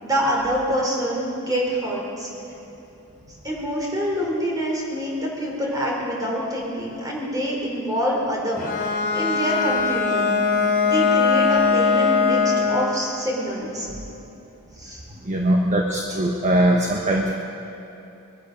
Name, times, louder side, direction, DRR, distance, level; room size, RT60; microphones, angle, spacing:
voice 1, 0.0-2.3 3.4-10.4 10.8-13.9 14.8-15.0, equal, 15° right, -3 dB, 3.6 m, -26 dB
Bowed string instrument, 8.6-12.8, left 5 dB, 40° left, 2.8 m, -20 dB
voice 2, 15.2-17.4, right 1 dB, 35° right, 0 dB, 1.1 m, -21 dB
22.5 x 12.0 x 5.2 m, 2.8 s
head